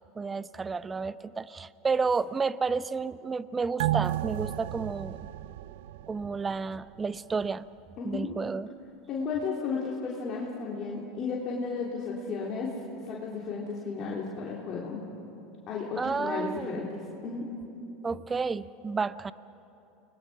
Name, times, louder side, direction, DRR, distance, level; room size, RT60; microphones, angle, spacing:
voice 1, 0.2-5.2 6.1-7.6 8.0-8.7 16.0-16.9 18.0-19.3, right 4 dB, 20° right, 16 dB, 0.7 m, -31 dB
sound 1, 3.8-6.7 7.0-7.1, right 14 dB, 70° right, 0.4 m, -32 dB
voice 2, 8.0-8.4 9.1-12.7 13.0-15.1 15.7-17.5, left 4 dB, 45° left, -4 dB, 3.3 m, -34 dB
29.5 x 21.0 x 6.1 m, 2.8 s
hypercardioid pair, 90°, 0 cm